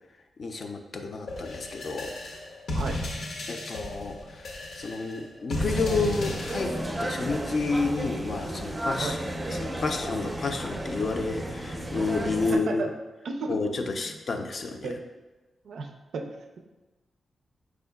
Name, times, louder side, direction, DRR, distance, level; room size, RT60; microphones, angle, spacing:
voice 1, 0.4-2.1 3.5-4.2 4.8-9.2 9.6-12.8 13.5-14.9, left 3 dB, 50° left, 5 dB, 0.4 m, -30 dB
sound 1, 1.3-6.9, left 1 dB, 90° left, 0.7 m, -34 dB
sound 2, 5.6-12.5, right 1 dB, 20° right, 0.5 m, -33 dB
voice 2, 12.5-12.9 13.2-13.6 14.0-14.2 14.8-15.0 15.6-16.3 16.6-16.7, right 3 dB, 85° right, 4 dB, 0.4 m, -33 dB
4.9 x 4.5 x 2.2 m, 1.2 s
wide cardioid pair, 125°, 0 cm